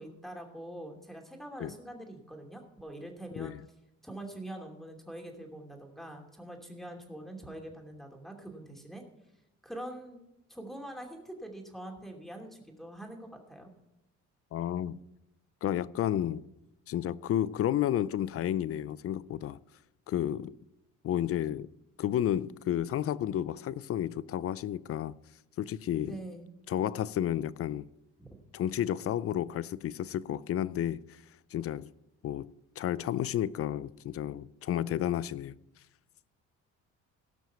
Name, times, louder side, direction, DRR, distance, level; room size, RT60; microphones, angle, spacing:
voice 1, 0.0-3.5 4.0-9.0 9.6-10.2 10.5-13.7 26.1-26.5 28.2-28.3, right 1 dB, ahead, 2.7 m, -44 dB
voice 2, 14.5-15.0 15.6-16.4 16.9-19.6 20.1-20.6 21.0-21.7 22.0-25.1 25.6-26.2 26.7-27.9 28.5-31.0 31.5-31.9 32.2-32.5 32.8-35.5, left 11 dB, 50° left, 0.5 m, -31 dB
17.5 x 6.1 x 5.7 m
cardioid pair, 100°, 31 cm